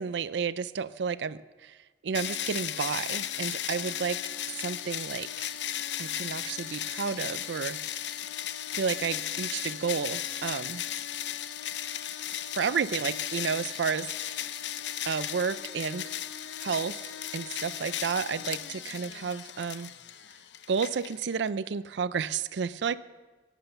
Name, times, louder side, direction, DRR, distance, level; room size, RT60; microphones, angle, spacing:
voice 1, 0.0-1.8 2.0-4.2 4.5-5.5 6.0-8.1 8.7-10.8 12.5-14.4 15.1-16.0 16.6-19.9 20.7-23.0, right 6 dB, 80° right, 16 dB, 0.4 m, -31 dB
sound 1, 2.1-21.5, left 11 dB, 80° left, 0.6 m, -36 dB
14.5 x 10.0 x 6.8 m, 1.3 s
head